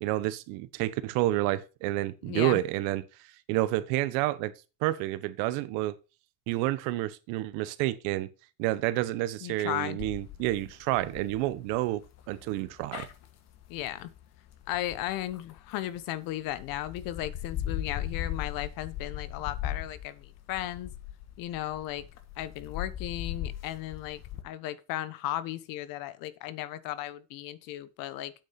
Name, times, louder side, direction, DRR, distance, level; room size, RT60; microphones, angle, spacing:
voice 1, 0.0-3.0 3.5-4.5 4.8-5.9 6.5-8.3 8.6-12.0 12.3-13.1, right 16 dB, 90° right, 1.1 m, -29 dB
voice 2, 2.2-2.6 9.4-10.0 13.7-14.1 14.7-20.9 21.4-22.0 22.4-28.3, left 14 dB, 70° left, 1.2 m, -35 dB
sound 1, 10.0-16.0 16.5-24.4, left 11 dB, 45° left, 1.5 m, -39 dB
8.5 x 6.5 x 5.8 m
cardioid pair, 145°, 35 cm